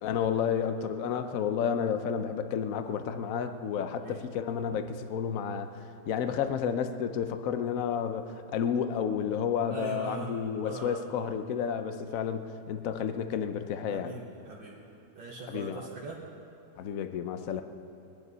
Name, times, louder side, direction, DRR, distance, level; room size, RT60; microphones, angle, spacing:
voice 1, 0.0-14.1 15.5-15.9 16.8-17.6, left 7 dB, 60° left, 9 dB, 1.0 m, -31 dB
voice 2, 9.7-11.0 13.9-14.8 15.2-16.2, right 4 dB, 75° right, -5 dB, 2.1 m, -41 dB
21.0 x 11.0 x 5.5 m, 2.7 s
omnidirectional pair, 2.1 m